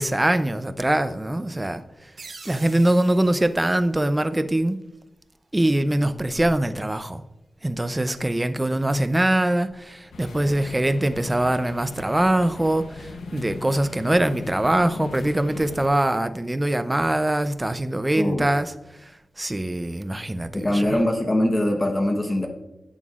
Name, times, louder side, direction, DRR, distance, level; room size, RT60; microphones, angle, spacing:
voice 1, 0.0-1.8 2.4-4.8 5.5-7.2 7.6-18.7 19.0-19.1 19.4-21.0, right 1 dB, 15° right, 0.5 m, -23 dB
sound 1, 2.2-4.7, right 4 dB, 60° right, 1.1 m, -46 dB
sound 2, 10.1-15.9, left 4 dB, 85° left, 0.7 m, -39 dB
voice 2, 18.2-18.5 20.5-22.5, left 1 dB, 20° left, 1.0 m, -22 dB
11.0 x 8.1 x 2.4 m
wide cardioid pair, 105°, 0 cm